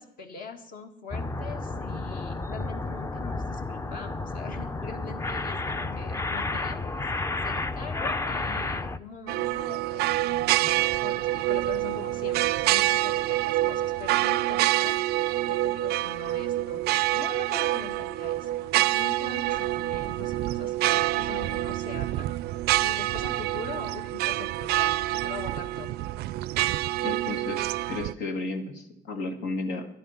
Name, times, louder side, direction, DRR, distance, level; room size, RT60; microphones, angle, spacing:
voice 1, 0.0-7.1 7.4-16.8 17.1-22.3 22.8-25.9, left 4 dB, 55° left, 6 dB, 1.9 m, -42 dB
sound 1, 1.1-9.0, left 3 dB, 15° left, 0.5 m, -31 dB
sound 2, 9.3-28.1, right 16 dB, 75° right, 0.4 m, -27 dB
voice 2, 27.0-29.9, left 3 dB, 85° left, 4 dB, 2.1 m, -33 dB
12.0 x 11.0 x 5.8 m, 0.78 s
cardioid pair, 110°, 17 cm